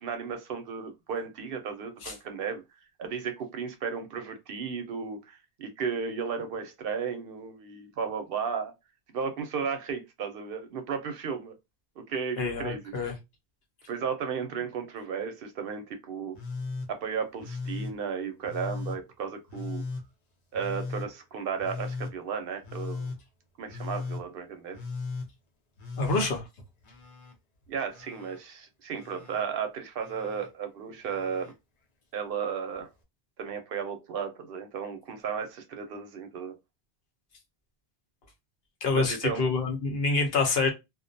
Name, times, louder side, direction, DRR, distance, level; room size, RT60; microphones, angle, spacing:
voice 1, 0.0-2.6 3.0-8.7 9.1-11.5 12.0-12.9 13.9-16.4 16.9-19.8 20.5-23.1 23.6-24.8 27.7-31.5 32.1-32.9 33.4-36.5 38.9-39.4, right 6 dB, 65° right, 0.7 m, -34 dB
voice 2, 12.4-13.1 26.0-26.4 38.8-40.7, left 3 dB, 70° left, 1.0 m, -27 dB
Telephone, 16.3-16.9 17.4-17.9 18.4-19.0 19.5-20.0 20.5-21.1 21.6-22.1 22.6-23.2 23.7-24.2 24.7-25.3 25.8-27.3 27.6-28.4 28.9-29.4 30.0-30.5 31.0-31.5 32.7-32.8, left 4 dB, 45° left, 0.7 m, -37 dB
2.4 x 2.1 x 2.5 m
omnidirectional pair, 1.1 m